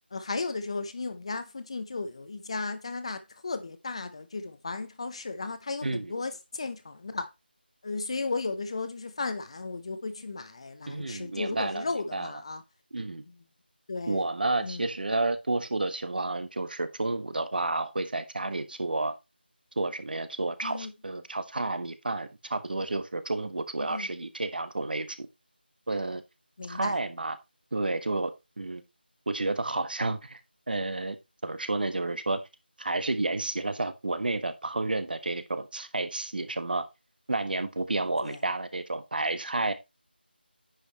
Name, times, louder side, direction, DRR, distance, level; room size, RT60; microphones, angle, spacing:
voice 1, 0.1-7.3 7.8-12.6 13.9-14.2 14.6-14.8 20.6-20.9 23.8-24.1 26.6-27.0 38.2-38.4, left 3 dB, 35° left, 0.9 m, -35 dB
voice 2, 5.8-6.1 10.9-11.8 12.1-12.3 12.9-13.2 14.1-19.1 19.8-25.3 25.9-26.2 26.7-27.4 27.7-28.3 28.6-28.8 29.3-30.4 30.7-31.2 31.4-32.4 32.8-36.9 37.3-39.7, right 2 dB, 60° right, 1.3 m, -30 dB
10.0 x 5.1 x 4.2 m
figure-of-eight pair, 170°, 6 cm